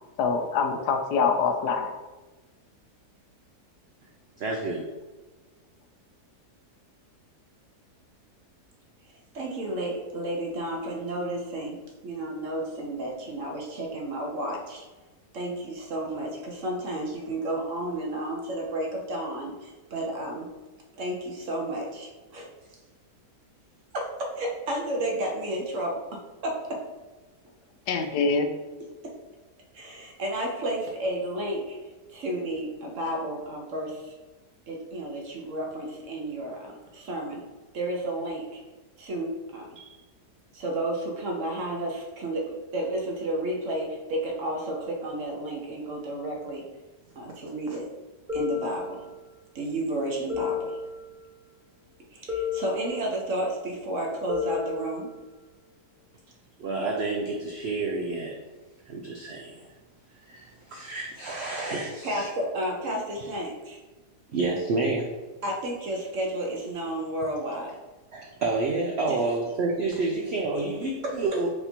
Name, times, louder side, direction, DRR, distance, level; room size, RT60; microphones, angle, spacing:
voice 1, 0.2-1.9 27.9-28.5, left 5 dB, 80° left, 6 dB, 1.1 m, -24 dB
voice 2, 4.4-4.9 56.6-58.3 58.9-59.7 60.3-62.3 64.3-65.1 68.1-71.5, right 3 dB, 75° right, 0 dB, 0.5 m, -29 dB
voice 3, 9.3-14.8 15.3-20.5 21.0-22.5 23.9-26.8 29.7-31.8 32.1-34.1 34.7-37.4 37.7-38.6 39.0-40.0 40.5-46.6 47.2-47.9 48.3-49.1 49.5-50.8 52.1-55.1 62.0-63.8 65.4-67.8 69.1-69.2 71.0-71.1, right 1 dB, 60° right, 0 dB, 1.0 m, -32 dB
sound 1, 48.3-49.5 50.3-51.5 52.3-53.5 54.3-55.5, left 6 dB, 35° right, 1.1 m, -33 dB
4.3 x 2.6 x 4.2 m, 1.2 s
omnidirectional pair, 1.7 m